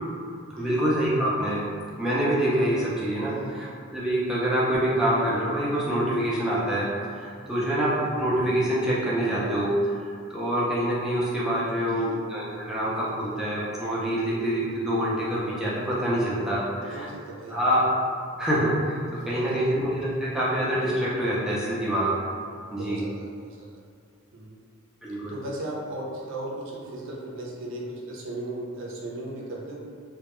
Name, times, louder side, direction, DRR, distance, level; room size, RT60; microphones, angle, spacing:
voice 1, 0.5-1.7 2.0-17.1 17.5-17.9 18.4-22.1 22.7-23.0 25.0-25.4, right 1 dB, ahead, -8 dB, 0.4 m, -26 dB
voice 2, 3.3-3.6 7.5-7.8 11.8-12.2 16.1-16.3 16.8-17.6 19.1-19.8 22.7-23.7 24.3-24.6 25.3-29.8, right 1 dB, 60° right, -4 dB, 0.5 m, -37 dB
2.2 x 2.1 x 2.9 m, 2.2 s
head